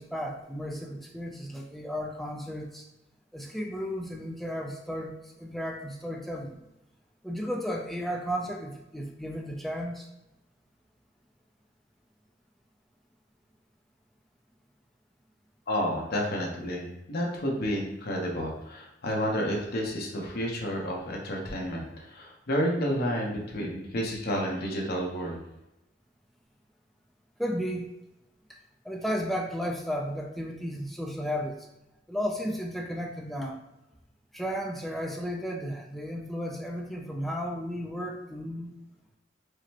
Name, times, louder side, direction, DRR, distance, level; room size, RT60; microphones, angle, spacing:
voice 1, 0.0-2.8 3.3-5.1 5.4-6.6 7.2-10.1 27.4-27.9 28.9-31.6 32.1-33.6 34.3-38.7, equal, ahead, 0 dB, 0.4 m, -33 dB
voice 2, 15.7-25.4, equal, 55° left, -1 dB, 0.9 m, -30 dB
4.9 x 2.1 x 2.8 m, 0.93 s
head